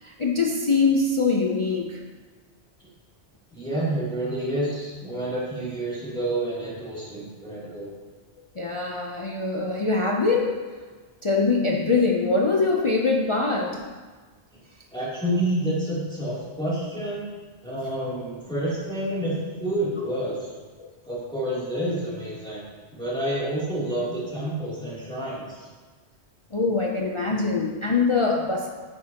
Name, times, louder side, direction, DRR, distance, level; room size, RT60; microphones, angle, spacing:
voice 1, 0.0-2.0 8.6-10.6 11.2-13.9 20.8-20.9 26.5-28.7, left 4 dB, 35° left, -1 dB, 0.6 m, -23 dB
voice 2, 3.5-7.9 14.9-17.3 17.6-20.5 21.0-22.6 22.9-25.7, right 1 dB, 5° left, -9 dB, 2.9 m, -29 dB
9.5 x 8.7 x 2.9 m, 1.4 s
omnidirectional pair, 1.1 m